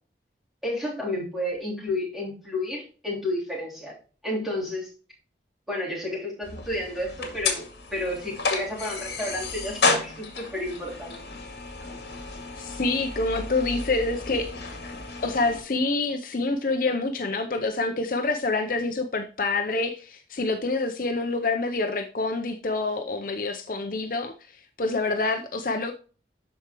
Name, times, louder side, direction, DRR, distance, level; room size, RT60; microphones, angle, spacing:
voice 1, 0.6-4.0 4.2-4.9 5.7-7.6 7.9-11.2, left 1 dB, ahead, 3.2 m, -31 dB
sound 1, 6.4-15.6, left 4 dB, 70° left, 2.1 m, -32 dB
voice 2, 12.6-14.8 15.2-24.3 24.8-25.9, left 3 dB, 50° left, 0.6 m, -27 dB
12.5 x 4.7 x 3.0 m
head